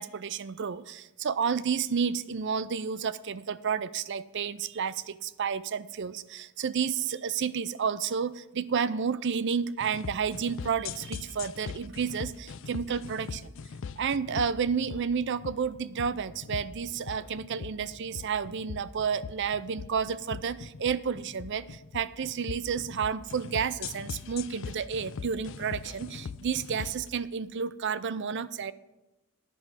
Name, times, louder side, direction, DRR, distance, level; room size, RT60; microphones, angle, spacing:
voice 1, 0.0-13.5 14.0-28.7, right 6 dB, 55° right, 17 dB, 0.5 m, -31 dB
sound 1, 9.8-27.1, left 6 dB, 60° left, 0.4 m, -41 dB
10.5 x 6.0 x 8.1 m, 1.0 s
head